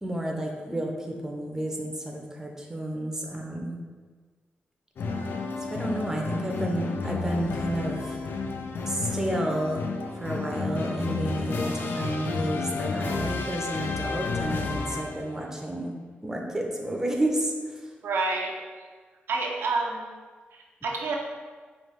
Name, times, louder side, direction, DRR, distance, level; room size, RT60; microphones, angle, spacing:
voice 1, 0.0-3.8 5.7-8.2 8.8-9.9 10.2-15.9 16.2-17.9, right 1 dB, 15° right, 0 dB, 0.6 m, -31 dB
sound 1, 5.0-15.4, left 3 dB, 65° left, 0.4 m, -31 dB
voice 2, 18.0-18.6 19.3-20.0 20.5-21.2, right 3 dB, 80° right, 0 dB, 0.5 m, -28 dB
5.0 x 2.4 x 3.1 m, 1.5 s
cardioid pair, 85°, 4 cm